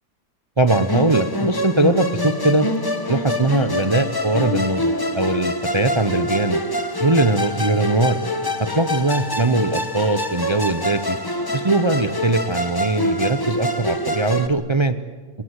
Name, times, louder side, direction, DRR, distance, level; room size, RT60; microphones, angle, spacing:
voice 1, 0.6-2.7 3.1-6.6 7.0-8.2 8.6-11.2 11.5-15.0, right 2 dB, 50° right, 11 dB, 0.3 m, -20 dB
Musical instrument, 0.7-14.5, left 1 dB, 15° left, 1.1 m, -25 dB
26.0 x 20.5 x 8.2 m, 1.5 s
omnidirectional pair, 1.9 m